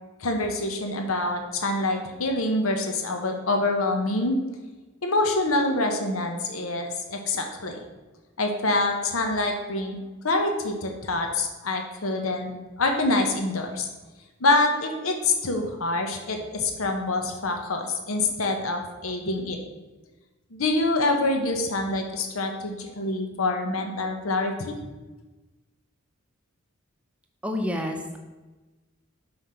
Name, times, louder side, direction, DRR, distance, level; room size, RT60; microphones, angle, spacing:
voice 1, 0.2-4.4 5.0-7.8 8.4-10.0 10.2-12.5 12.8-13.9 14.4-19.6 20.5-24.8, left 2 dB, 85° left, 4 dB, 1.1 m, -26 dB
voice 2, 27.4-28.2, left 1 dB, 5° right, 3 dB, 0.7 m, -29 dB
5.7 x 4.9 x 5.7 m, 1.2 s
head